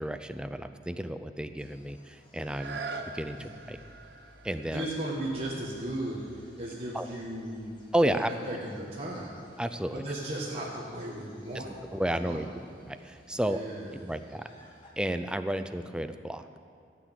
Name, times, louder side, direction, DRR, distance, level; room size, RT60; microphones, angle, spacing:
voice 1, 0.0-2.8 3.1-3.8 4.4-4.9 6.9-7.1 7.9-8.3 9.6-10.0 11.9-12.5 12.9-13.6 14.0-14.5 15.0-16.5, right 1 dB, 5° right, 9 dB, 0.4 m, -31 dB
sound 1, 1.6-14.9, left 1 dB, 30° left, 1.9 m, -59 dB
sound 2, 2.4-8.0 8.6-8.7, right 4 dB, 75° right, 0.9 m, -45 dB
voice 2, 4.7-7.7 8.1-9.4 9.9-11.8 12.1-12.5 13.3-14.1, right 1 dB, 35° right, -6 dB, 1.5 m, -36 dB
15.0 x 6.1 x 8.2 m, 2.3 s
head